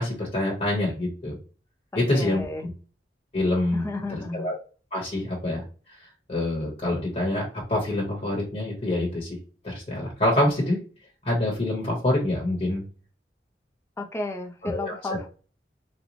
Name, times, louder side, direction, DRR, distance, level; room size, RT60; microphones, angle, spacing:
voice 1, 0.0-1.3 1.9-2.7 3.3-3.9 4.3-4.5 4.9-5.6 6.3-9.3 9.6-10.8 11.2-12.8 14.6-15.0, left 1 dB, 35° left, -3 dB, 1.0 m, -26 dB
voice 2, 1.9-2.6 3.7-4.5 14.0-15.3, left 2 dB, 15° left, 3 dB, 0.5 m, -33 dB
4.0 x 2.2 x 2.9 m, 0.37 s
head